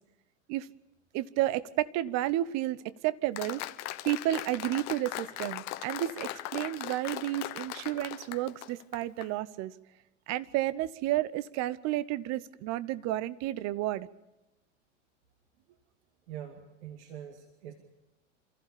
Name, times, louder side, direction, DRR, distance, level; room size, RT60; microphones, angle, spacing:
voice 1, 1.1-3.6 4.0-9.7 10.3-14.1, right 15 dB, 50° right, 18 dB, 1.0 m, -31 dB
Applause, 3.4-9.3, left 15 dB, 50° left, 1.2 m, -39 dB
voice 2, 16.3-17.7, right 10 dB, 70° right, 3 dB, 2.4 m, -44 dB
27.5 x 15.0 x 7.1 m, 1.0 s
hypercardioid pair, 85°, 35 cm